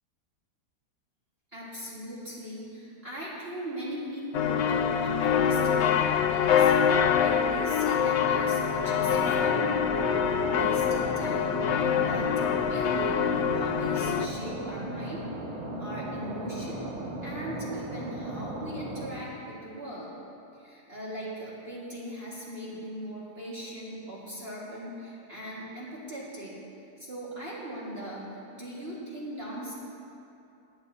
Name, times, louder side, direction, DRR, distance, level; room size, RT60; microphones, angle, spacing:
voice 1, 1.5-13.2 13.5-15.3 15.8-16.8 17.2-20.1 20.5-26.6 27.0-29.7, equal, 40° right, -7 dB, 1.9 m, -39 dB
sound 1, 4.3-14.3, left 7 dB, 90° left, 0.6 m, -25 dB
sound 2, 8.5-19.1, right 1 dB, 20° right, 2.2 m, -37 dB
19.5 x 10.0 x 2.7 m, 2.7 s
omnidirectional pair, 1.7 m